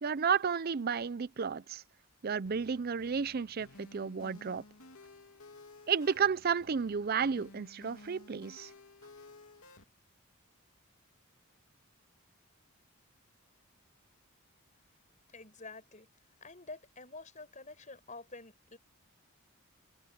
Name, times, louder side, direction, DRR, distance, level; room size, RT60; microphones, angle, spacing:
voice 1, 0.0-1.8 2.2-4.6 5.9-8.7, right 6 dB, 45° right, 0.5 m, -32 dB
sound 1, 2.5-9.8, left 2 dB, 75° left, 2.9 m, -55 dB
voice 2, 15.3-16.1 16.4-18.8, left 3 dB, 35° left, 5.7 m, -48 dB
head